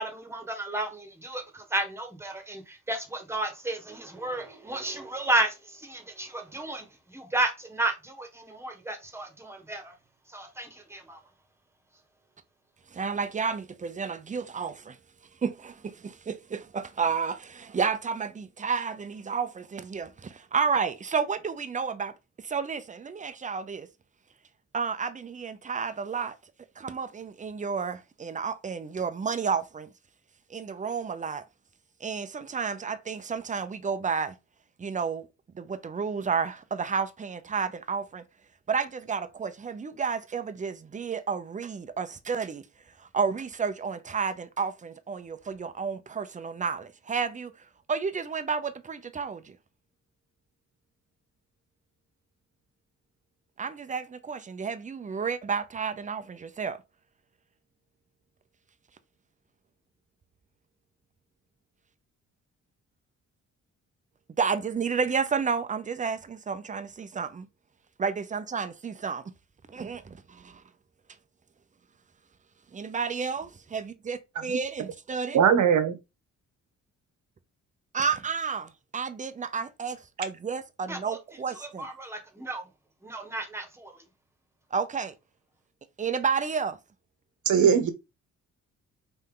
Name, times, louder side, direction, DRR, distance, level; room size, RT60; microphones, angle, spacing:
voice 1, 0.0-9.9 10.3-11.2 80.9-81.2 81.6-82.7 83.0-84.0, right 2 dB, 10° right, 1.4 m, -33 dB
voice 2, 12.9-15.0 15.4-22.1 22.4-23.9 24.7-26.4 26.8-29.9 30.5-31.4 32.0-34.3 34.8-35.3 35.5-38.2 38.7-42.6 43.0-47.5 47.9-49.6 53.6-56.8 64.4-67.5 68.0-69.2 69.7-70.6 72.7-74.2 74.4-75.4 77.9-81.9 84.7-85.1 86.0-86.8, right 5 dB, 25° right, 0.7 m, -31 dB
voice 3, 75.3-75.9 87.4-88.0, right 7 dB, 75° right, 1.2 m, -20 dB
5.6 x 4.4 x 3.8 m
cardioid pair, 140°, 30 cm